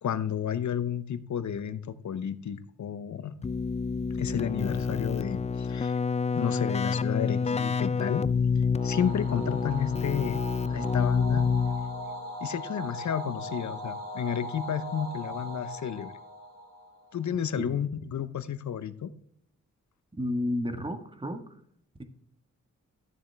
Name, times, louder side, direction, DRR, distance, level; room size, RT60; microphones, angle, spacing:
voice 1, 0.0-3.3 4.1-6.0 6.3-8.3 8.8-10.4 10.7-11.5 12.4-16.1 17.1-19.1, left 8 dB, 60° left, 13 dB, 0.8 m, -32 dB
Keyboard (musical), 3.4-12.1, left 5 dB, 20° left, 0.4 m, -28 dB
sound 1, 8.8-17.4, equal, 80° right, 2.8 m, -39 dB
voice 2, 20.1-21.6, left 1 dB, 15° right, 7 dB, 1.5 m, -32 dB
12.0 x 7.2 x 3.4 m, 0.66 s
cardioid pair, 80°, 32 cm